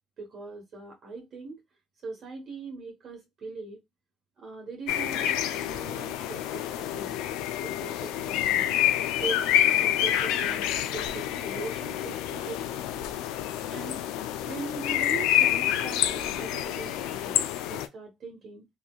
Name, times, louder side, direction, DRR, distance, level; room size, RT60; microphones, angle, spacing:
voice 1, 0.2-1.6 2.0-3.8 4.4-7.1 7.6-8.7 9.2-13.1 13.7-14.0 14.4-18.7, right 3 dB, 50° right, 1.0 m, -41 dB
sound 1, 4.9-17.9, left 11 dB, 80° left, 0.3 m, -28 dB
3.1 x 2.6 x 2.3 m
supercardioid pair, 70°, 0 cm